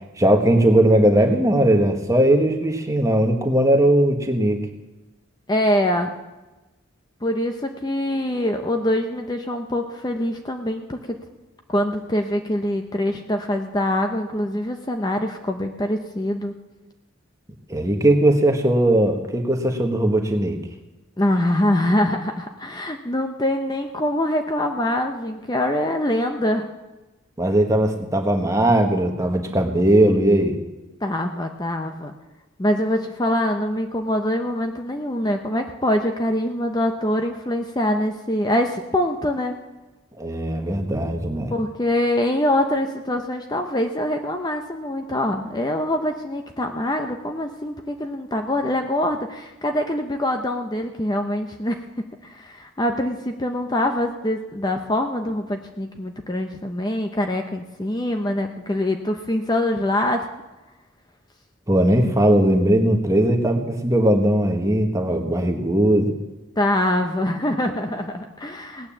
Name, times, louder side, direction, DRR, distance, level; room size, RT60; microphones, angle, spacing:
voice 1, 0.2-4.6 17.7-20.6 27.4-30.6 40.2-41.5 61.7-66.1, right 1 dB, 15° right, 3 dB, 1.4 m, -19 dB
voice 2, 5.5-6.1 7.2-11.2 11.7-16.5 21.2-26.7 31.0-32.1 32.6-39.5 41.5-60.3 66.6-68.9, left 1 dB, 20° left, 5 dB, 0.7 m, -24 dB
17.5 x 9.5 x 7.3 m, 1.1 s
head